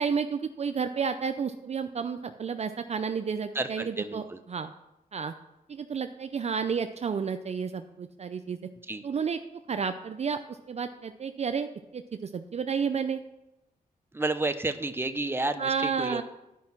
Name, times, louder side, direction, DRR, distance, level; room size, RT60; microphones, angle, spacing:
voice 1, 0.0-4.7 5.1-5.3 5.7-8.7 9.0-9.4 9.7-13.2 15.6-16.2, right 6 dB, 45° right, 8 dB, 0.5 m, -31 dB
voice 2, 3.5-4.4 8.9-9.0 14.1-16.2, right 2 dB, 15° right, 8 dB, 0.8 m, -31 dB
10.5 x 5.3 x 5.9 m, 0.91 s
cardioid pair, 65°, 15 cm